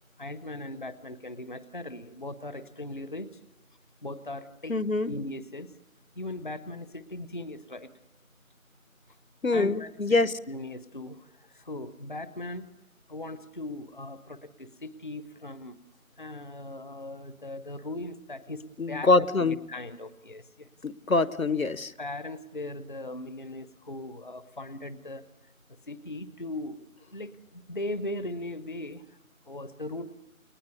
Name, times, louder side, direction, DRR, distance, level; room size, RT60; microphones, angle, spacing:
voice 1, 0.2-3.4 4.0-5.7 6.2-7.9 9.5-10.2 10.5-12.7 13.1-15.8 16.2-20.7 22.0-25.2 25.9-26.9 27.1-29.0 29.5-30.2, left 1 dB, 35° left, 15 dB, 0.9 m, -39 dB
voice 2, 4.7-5.1 9.4-10.3 18.8-19.6 20.8-21.9, left 3 dB, 70° left, 17 dB, 1.1 m, -24 dB
29.5 x 18.5 x 9.5 m, 0.91 s
figure-of-eight pair, 165°, 42 cm